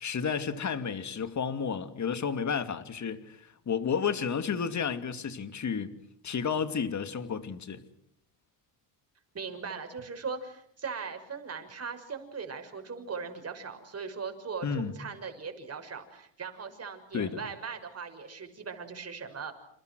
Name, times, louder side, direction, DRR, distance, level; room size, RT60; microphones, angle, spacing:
voice 1, 0.0-5.9 6.2-7.8 14.6-14.9 17.1-17.4, left 6 dB, 35° left, 2.6 m, -32 dB
voice 2, 9.3-19.5, right 5 dB, 30° right, 6.3 m, -39 dB
29.0 x 29.0 x 6.4 m
cardioid pair, 120°, 48 cm